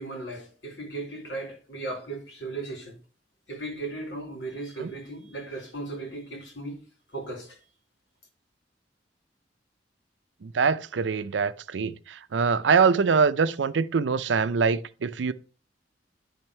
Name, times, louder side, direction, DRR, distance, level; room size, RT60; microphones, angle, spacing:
voice 1, 0.0-3.0 3.5-6.8 7.1-7.6, right 2 dB, 85° left, 2.4 m, -36 dB
voice 2, 10.4-15.3, right 5 dB, 80° right, 0.5 m, -24 dB
10.5 x 3.5 x 4.4 m
head